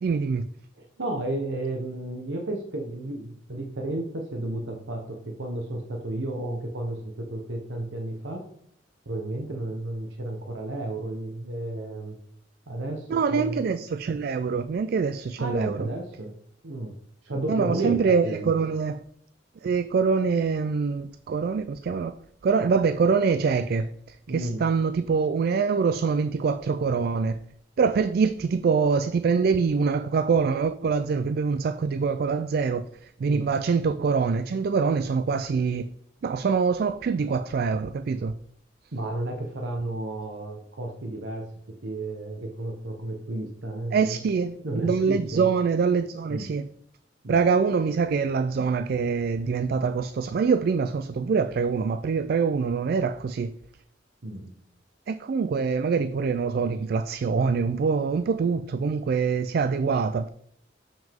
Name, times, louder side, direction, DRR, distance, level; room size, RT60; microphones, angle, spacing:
voice 1, 0.0-0.5 13.1-15.9 17.5-19.0 19.6-27.4 27.8-35.9 36.2-38.3 43.9-46.7 47.3-53.5 55.1-60.3, right 5 dB, 55° right, 0.3 m, -24 dB
voice 2, 0.8-8.4 9.1-12.2 12.7-13.6 15.4-16.3 16.6-17.0 17.2-18.5 24.3-24.6 33.3-33.5 38.9-41.4 41.8-44.2 44.6-45.5 46.3-46.5 47.2-47.4 54.2-54.5, right 1 dB, 85° right, 1.0 m, -32 dB
7.3 x 6.1 x 3.6 m
head